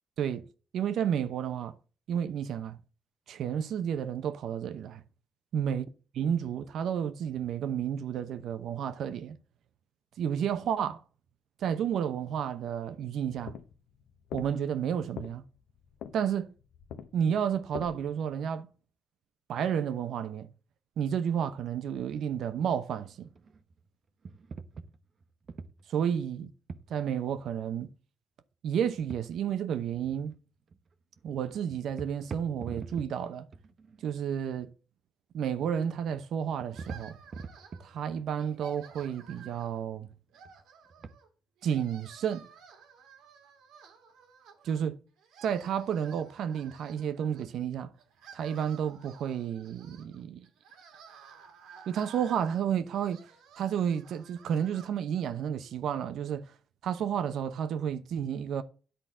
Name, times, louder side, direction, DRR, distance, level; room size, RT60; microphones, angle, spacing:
voice 1, 0.7-1.8 2.1-2.8 3.3-5.0 5.5-5.8 6.2-9.4 10.2-11.0 11.6-13.5 14.3-15.4 16.1-16.5 17.1-18.7 19.5-20.5 21.0-23.3 25.9-26.5 26.9-27.9 28.6-30.4 31.2-33.5 34.0-34.7 35.3-37.2 37.8-40.1 41.6-42.5 44.6-45.0 45.4-47.9 48.3-50.5 51.9-53.2 53.6-56.5 56.8-58.6, right 8 dB, 70° right, 0.8 m, -31 dB
sound 1, 13.3-18.4, left 8 dB, 80° left, 0.8 m, -44 dB
sound 2, 23.1-23.9 24.2-26.0 26.7-27.0 28.9-29.6 29.8-30.4 30.7-30.9 31.2-31.4 31.7-33.3 33.5-34.1 35.6-36.2 36.5-38.5 39.0-40.2 40.4-40.6 40.9-41.1, right 4 dB, 45° right, 0.9 m, -44 dB
sound 3, 36.7-38.0 38.4-39.8 40.3-41.3 41.6-44.9 45.2-47.4 48.0-54.9, right 6 dB, 90° right, 2.1 m, -53 dB
10.5 x 4.1 x 6.0 m
cardioid pair, 90°, 0 cm